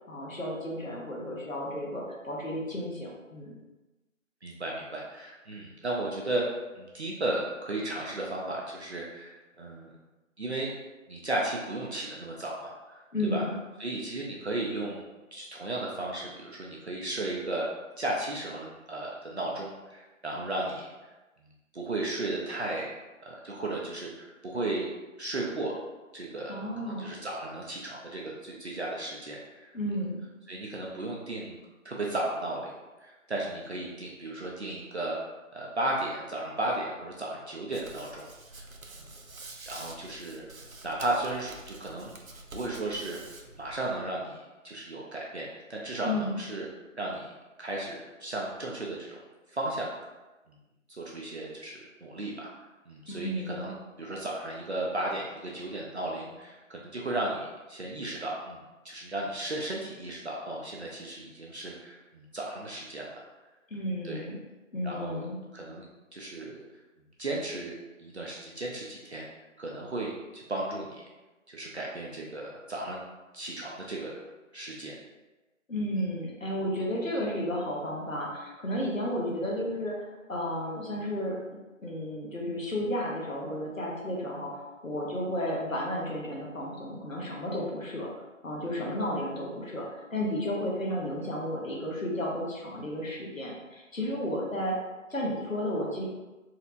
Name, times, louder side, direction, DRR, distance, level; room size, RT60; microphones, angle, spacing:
voice 1, 0.1-3.5 13.1-13.6 26.5-27.1 29.7-30.2 46.0-46.4 53.1-53.7 63.7-64.4 64.7-65.4 75.7-81.4 81.8-88.1 88.4-94.8 95.1-96.0, left 1 dB, 75° left, -3 dB, 1.1 m, -33 dB
voice 2, 4.4-9.9 10.4-10.7 11.1-13.4 13.8-15.0 15.3-17.7 18.0-20.9 21.7-22.9 23.2-24.9 25.2-25.8 26.1-26.6 26.9-29.7 30.5-31.6 31.8-32.7 33.0-35.2 35.5-38.3 38.6-38.7 39.0-39.1 39.7-40.4 40.8-42.1 42.5-43.2 43.6-46.7 47.0-47.3 47.6-49.2 49.5-49.9 50.5-50.6 51.0-52.5 52.9-53.7 54.0-58.6 58.8-63.2 64.0-64.2 64.8-65.3 65.5-65.9 66.1-66.6 67.2-69.3 69.6-71.0 71.5-73.0 73.3-74.2 74.5-74.9 88.7-88.8, right 2 dB, 55° right, -3 dB, 0.6 m, -35 dB
Hands, 37.7-44.0, right 2 dB, 85° right, 0.7 m, -47 dB
4.3 x 3.1 x 2.5 m, 1.1 s
figure-of-eight pair, 160°, 41 cm